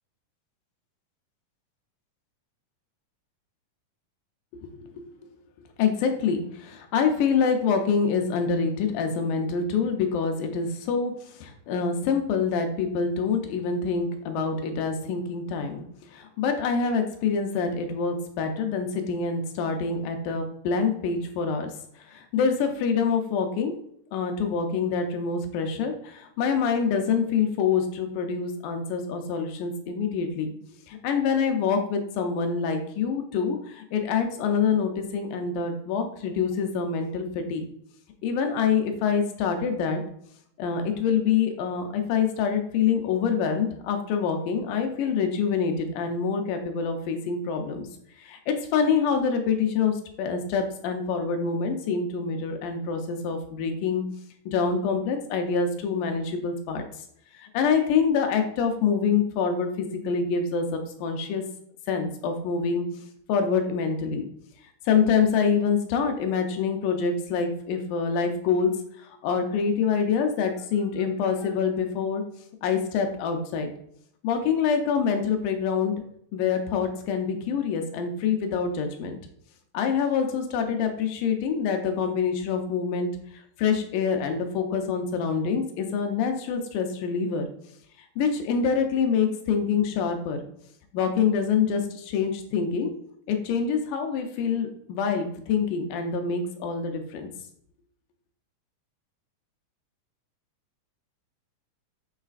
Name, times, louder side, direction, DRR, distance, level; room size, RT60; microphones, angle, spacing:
voice 1, 5.8-15.8 16.1-23.7 24.1-30.5 30.9-37.7 38.2-40.0 40.6-47.9 48.2-54.0 54.5-56.8 57.3-61.4 61.9-62.8 63.3-64.3 64.9-72.2 72.6-73.7 74.2-75.9 76.3-79.2 79.7-87.4 88.2-90.4 90.9-92.9 93.3-97.3, left 6 dB, 85° left, 5 dB, 2.1 m, -26 dB
6.4 x 3.2 x 2.4 m, 0.69 s
omnidirectional pair, 3.7 m